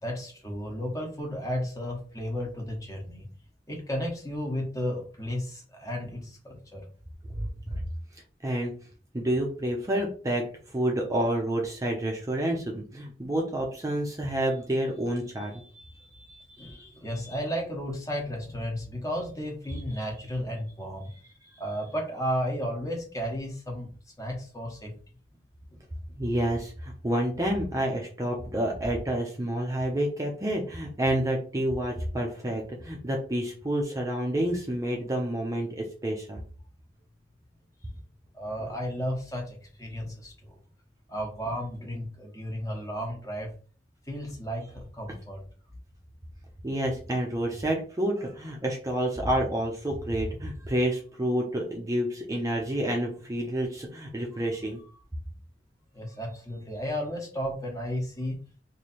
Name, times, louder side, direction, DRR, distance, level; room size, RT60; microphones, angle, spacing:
voice 1, 0.0-3.3 3.7-6.9 16.6-21.1 21.6-24.9 38.3-40.6 41.1-43.5 44.1-45.4 55.9-58.4, equal, 20° left, 1 dB, 1.0 m, -33 dB
voice 2, 7.3-7.8 8.4-8.7 9.1-15.9 16.3-16.7 17.3-17.4 26.2-36.4 46.6-54.8, right 1 dB, 20° right, 0 dB, 0.6 m, -29 dB
3.2 x 2.7 x 4.2 m, 0.40 s
head